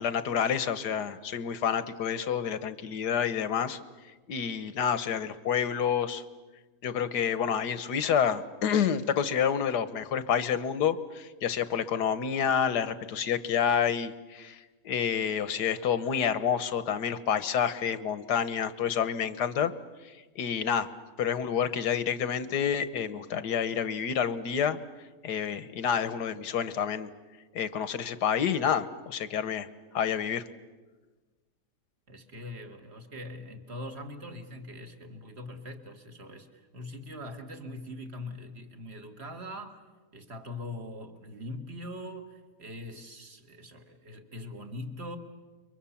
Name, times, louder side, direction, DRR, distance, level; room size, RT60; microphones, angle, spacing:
voice 1, 0.0-3.8 4.3-6.2 6.8-14.6 14.9-19.7 20.4-20.9 21.2-24.8 25.2-27.1 27.6-29.7 29.9-30.4, left 8 dB, 85° left, 13 dB, 1.7 m, -28 dB
voice 2, 32.1-39.8 40.1-45.2, left 1 dB, 40° right, 6 dB, 2.1 m, -42 dB
29.5 x 23.5 x 7.2 m, 1.3 s
omnidirectional pair, 1.7 m